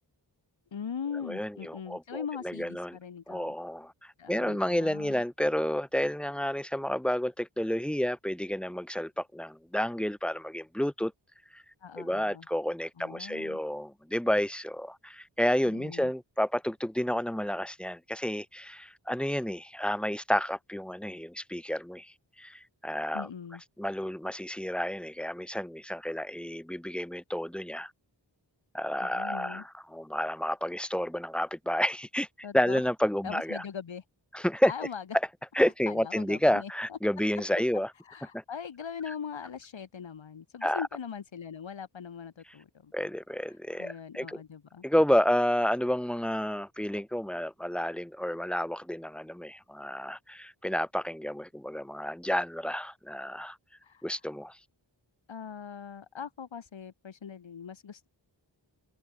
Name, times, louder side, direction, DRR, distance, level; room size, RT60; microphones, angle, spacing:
voice 1, 0.7-3.5 4.2-5.2 11.8-12.5 13.0-13.6 15.6-16.1 23.1-23.6 29.0-29.6 32.4-32.8 33.2-34.0 34.7-35.0 35.9-37.0 38.0-42.9 43.4-44.8 53.8-54.2 55.3-58.1, left 7 dB, 80° left, 1.2 m, -41 dB
voice 2, 1.3-3.0 3.3-11.1 11.5-11.6 12.0-23.3 23.8-27.9 28.7-29.6 29.9-32.3 32.5-33.6 34.3-34.7 35.5-37.9 40.6-40.9 42.9-44.4 44.8-53.6 54.0-54.6, equal, ahead, 0.8 m, -30 dB
open air
wide cardioid pair, 55°, 45 cm